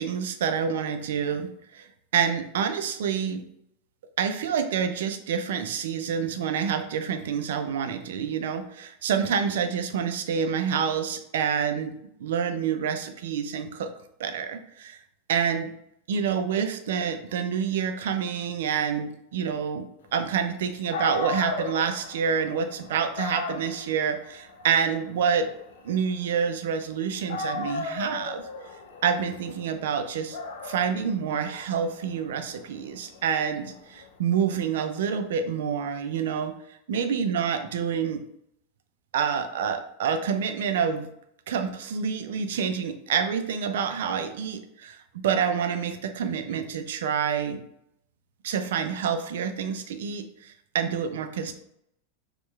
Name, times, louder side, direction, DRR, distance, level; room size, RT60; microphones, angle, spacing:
voice 1, 0.0-1.9 2.1-3.4 4.2-11.9 12.2-13.9 14.2-15.0 15.3-15.7 16.1-19.9 20.1-25.5 25.8-28.4 29.0-30.4 30.6-36.5 36.9-38.2 39.1-41.1 41.5-47.6 48.4-51.5, right 7 dB, 70° right, 7 dB, 0.5 m, -27 dB
Dog, 20.6-20.7 20.9-26.9 27.3-34.1, left 3 dB, 70° left, 0.5 m, -36 dB
4.4 x 2.3 x 3.2 m, 0.74 s
hypercardioid pair, 90°, 0 cm